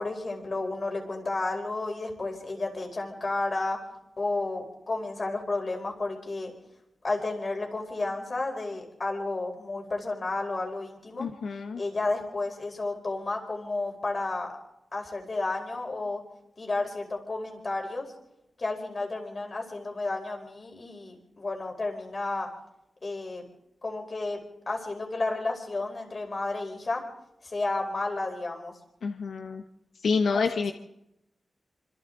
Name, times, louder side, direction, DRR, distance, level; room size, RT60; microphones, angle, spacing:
voice 1, 0.0-3.8 4.2-6.5 7.0-11.3 11.8-14.5 14.9-16.2 16.6-18.1 18.6-22.5 23.0-23.4 23.8-24.4 24.7-27.0 27.4-28.7 30.3-30.6, left 2 dB, 40° left, 2 dB, 4.6 m, -32 dB
voice 2, 11.2-11.8 29.0-29.6 30.0-30.7, left 5 dB, 80° left, 5 dB, 1.1 m, -28 dB
26.0 x 26.0 x 3.9 m, 0.86 s
wide cardioid pair, 115°, 0 cm